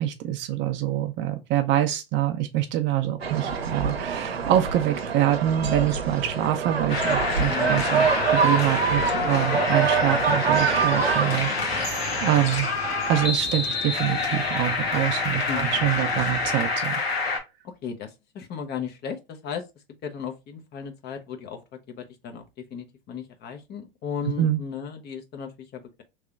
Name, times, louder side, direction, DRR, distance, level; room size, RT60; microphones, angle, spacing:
voice 1, 0.0-12.7 13.1-17.4 24.4-24.6, right 12 dB, 40° right, 0.6 m, -25 dB
sound 1, 3.2-11.4, right 6 dB, 85° right, 0.8 m, -25 dB
sound 2, 6.9-17.4, left 4 dB, 85° left, 1.4 m, -27 dB
sound 3, 7.4-16.7, equal, 5° right, 0.9 m, -41 dB
voice 2, 7.5-7.9 15.5-15.9 17.6-19.6 20.0-26.0, left 7 dB, 35° left, 0.9 m, -36 dB
3.2 x 2.9 x 3.6 m
hypercardioid pair, 95°, 30 cm